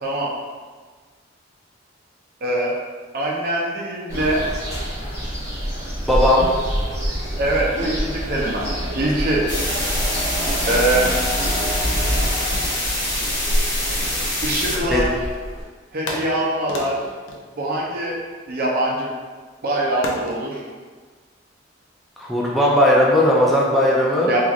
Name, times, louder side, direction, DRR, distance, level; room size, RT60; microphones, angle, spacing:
voice 1, 2.4-2.7 3.1-4.4 7.4-8.7 8.9-9.4 10.7-11.1 14.4-15.1 15.9-17.0 17.6-18.2 18.5-19.1 19.6-20.6 24.3-24.4, right 1 dB, 50° right, -3 dB, 0.6 m, -23 dB
sound 1, 4.1-15.6, equal, 15° right, 0.8 m, -26 dB
voice 2, 6.1-6.5 14.9-15.0 22.2-24.3, left 1 dB, ahead, -5 dB, 0.3 m, -17 dB
sound 2, 9.5-14.8, left 1 dB, 60° left, 0.9 m, -25 dB
sound 3, 14.4-15.5 16.1-18.5 20.0-20.4, left 1 dB, 85° left, 0.4 m, -33 dB
3.0 x 2.4 x 2.4 m, 1.5 s
head